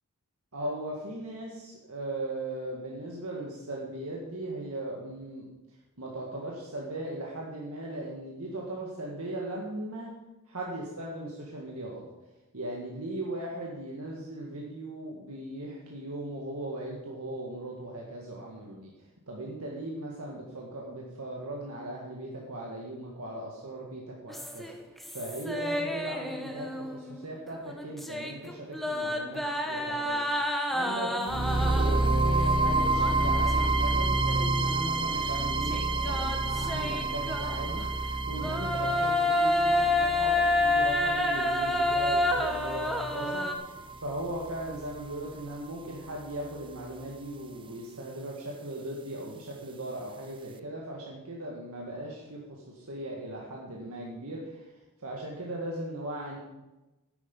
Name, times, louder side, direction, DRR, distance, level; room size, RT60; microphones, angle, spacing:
voice 1, 0.5-5.5 6.0-10.1 10.5-12.1 12.5-18.9 19.3-24.7 25.1-54.7 55.0-56.4, right 1 dB, 75° right, -2 dB, 1.9 m, -38 dB
sound 1, 24.3-27.2 27.5-32.2 32.9-34.0 34.3-34.4 35.6-37.9 38.3-43.5, left 1 dB, ahead, 0.9 m, -29 dB
sound 2, 31.3-45.3, right 2 dB, 20° right, 0.5 m, -29 dB
10.5 x 9.7 x 5.4 m, 1.0 s
head